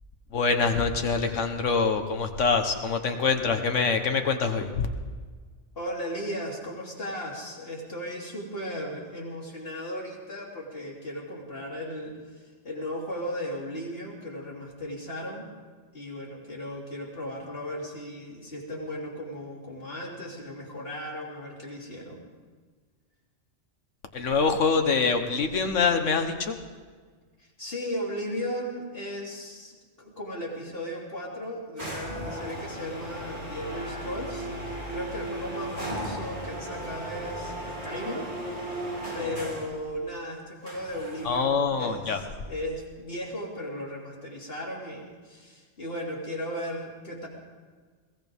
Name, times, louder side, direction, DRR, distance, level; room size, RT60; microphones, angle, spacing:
voice 1, 0.3-4.9 24.1-26.5 41.2-42.2, left 5 dB, 85° left, 6 dB, 1.6 m, -25 dB
voice 2, 5.8-12.2 12.6-15.5 15.9-22.2 27.4-38.8 39.1-47.3, equal, 50° left, -3 dB, 3.5 m, -36 dB
sound 1, 31.8-39.8 40.6-41.6, right 1 dB, 40° right, 3.4 m, -36 dB
22.0 x 17.5 x 3.6 m, 1.5 s
omnidirectional pair, 1.2 m